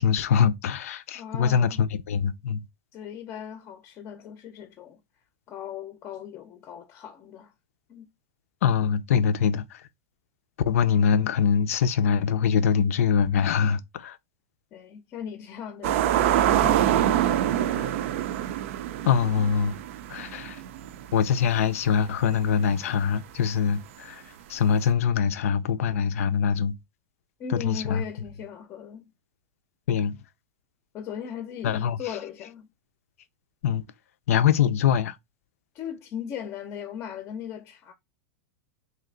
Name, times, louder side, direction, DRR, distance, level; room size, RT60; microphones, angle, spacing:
voice 1, 0.0-2.6 8.6-9.8 10.7-14.2 19.0-19.8 20.1-20.6 21.1-24.2 24.5-26.7 27.5-28.0 29.9-30.2 31.6-32.2 33.6-33.8 34.3-35.2, left 7 dB, 80° left, 0.5 m, -23 dB
voice 2, 1.1-1.8 2.9-5.0 5.5-7.5 7.9-8.1 14.7-18.0 27.4-29.1 30.9-32.7 35.7-37.9, left 8 dB, 30° left, 0.6 m, -38 dB
sound 1, 15.8-21.3 21.7-21.8 24.9-25.0, right 11 dB, 65° right, 0.4 m, -25 dB
3.3 x 2.7 x 3.8 m
supercardioid pair, 145°, 8 cm